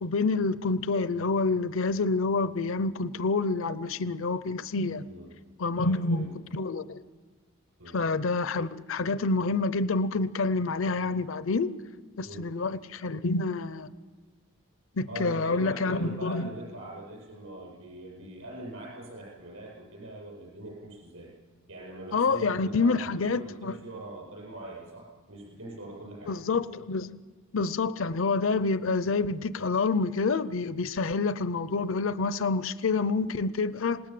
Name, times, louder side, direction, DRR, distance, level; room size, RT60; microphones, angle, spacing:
voice 1, 0.0-5.0 5.6-6.3 6.5-7.0 7.9-11.7 12.2-13.9 15.0-16.5 22.1-23.8 26.3-27.2 27.5-34.0, left 3 dB, 65° left, 0.6 m, -27 dB
voice 2, 5.0-5.3 5.7-6.3 7.8-8.0 12.2-12.4 15.1-21.3 21.7-26.4, right 1 dB, 70° right, 7.8 m, -42 dB
26.5 x 19.0 x 7.7 m
head